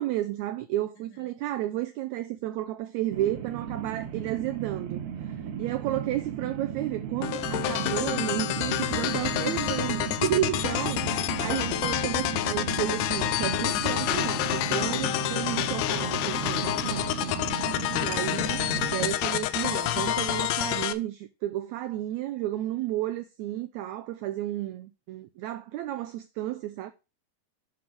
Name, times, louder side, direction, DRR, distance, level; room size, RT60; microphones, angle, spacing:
voice 1, 0.0-17.0 17.9-18.6 18.9-26.9, right 14 dB, 80° right, 1.6 m, -32 dB
voice 2, 1.0-1.4 10.7-10.9 17.0-18.4, left 3 dB, 65° left, 3.9 m, -53 dB
sound 1, 3.1-19.1, right 9 dB, 65° right, 1.9 m, -35 dB
sound 2, 7.2-20.9, left 14 dB, 80° left, 2.0 m, -28 dB
9.6 x 3.6 x 5.9 m
omnidirectional pair, 3.8 m